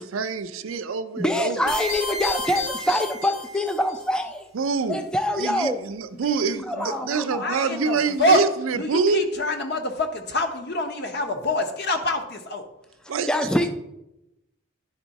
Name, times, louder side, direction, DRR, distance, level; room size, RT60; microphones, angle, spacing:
voice 1, 0.0-1.7 4.5-5.0 5.4-9.2 13.1-13.3 13.6-13.7, right 4 dB, 75° right, 11 dB, 0.5 m, -26 dB
voice 2, 1.1-4.5 4.9-5.8 6.7-8.0 13.3-13.7, left 1 dB, 5° left, 6 dB, 0.3 m, -25 dB
sound 1, 1.7-4.0, left 2 dB, 85° left, 2.2 m, -31 dB
voice 3, 6.1-8.4 8.7-12.6, left 1 dB, 50° left, 6 dB, 0.8 m, -26 dB
10.5 x 3.6 x 4.1 m, 0.89 s
head